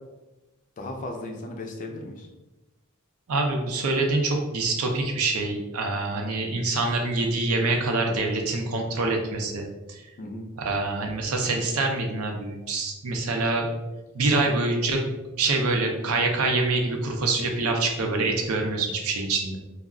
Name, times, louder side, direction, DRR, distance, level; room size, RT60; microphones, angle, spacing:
voice 1, 0.8-2.3 10.2-10.5 14.3-14.5, left 2 dB, 35° left, 3 dB, 0.4 m, -35 dB
voice 2, 3.3-10.0 10.6-13.7 14.1-15.0 15.3-19.6, right 3 dB, 75° right, 2 dB, 0.5 m, -25 dB
2.3 x 2.0 x 3.6 m, 1.1 s
head